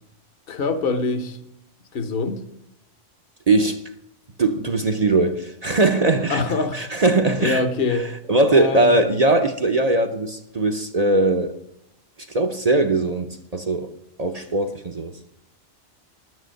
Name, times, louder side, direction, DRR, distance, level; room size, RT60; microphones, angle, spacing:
voice 1, 0.5-1.4 1.9-2.4 6.3-7.0 7.4-8.1 8.5-9.0, left 3 dB, 50° left, 1.2 m, -24 dB
voice 2, 3.5-3.8 4.4-6.4 6.7-7.6 7.9-8.0 8.3-11.5 12.3-13.9 14.2-15.1, right 2 dB, 40° right, 0.7 m, -20 dB
11.0 x 9.7 x 6.4 m
omnidirectional pair, 1.2 m